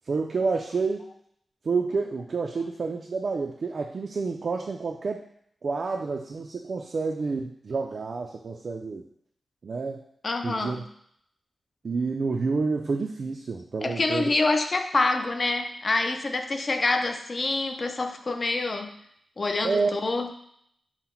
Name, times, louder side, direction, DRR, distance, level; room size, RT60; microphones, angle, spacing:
voice 1, 0.1-1.1 1.6-5.3 5.6-9.0 9.6-10.0 10.4-10.8 11.8-14.3 19.6-20.0, right 4 dB, 50° right, 2 dB, 0.3 m, -29 dB
voice 2, 10.2-10.9 13.8-18.9 19.4-20.3, left 3 dB, 35° left, 6 dB, 0.4 m, -26 dB
5.5 x 2.0 x 4.4 m, 0.71 s
wide cardioid pair, 160°, 0 cm